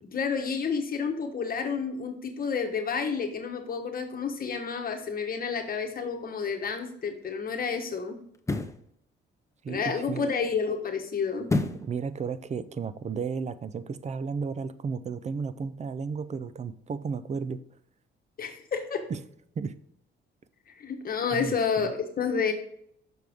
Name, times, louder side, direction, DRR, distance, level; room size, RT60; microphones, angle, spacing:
voice 1, 0.0-8.2 9.7-11.5 18.4-19.0 20.7-22.5, left 5 dB, 45° left, 4 dB, 1.2 m, -30 dB
sound 1, 6.5-6.6 8.3-8.8 11.5-11.9 12.4-12.5, left 2 dB, 15° left, 0.7 m, -28 dB
voice 2, 9.6-10.2 11.7-17.6 19.1-19.2 19.6-19.7 21.3-21.9, right 5 dB, 35° right, 14 dB, 0.6 m, -33 dB
6.6 x 6.1 x 3.6 m, 0.69 s
cardioid pair, 90°, 20 cm